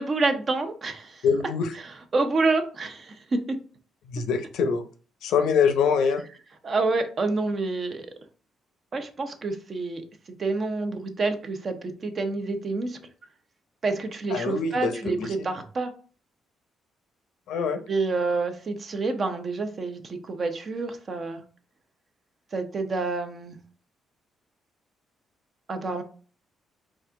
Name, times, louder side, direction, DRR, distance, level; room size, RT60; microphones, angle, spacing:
voice 1, 0.0-1.2 2.1-3.4 6.6-8.1 8.9-10.0 10.3-13.0 13.8-15.9 17.9-21.4 22.5-23.6 25.7-26.0, right 3 dB, 45° right, 7 dB, 0.7 m, -28 dB
voice 2, 1.2-1.7 4.1-4.8 5.2-6.2 14.3-15.5 17.5-17.8, left 6 dB, 85° left, 8 dB, 0.6 m, -24 dB
4.2 x 2.5 x 3.5 m, 0.39 s
cardioid pair, 90°, 0 cm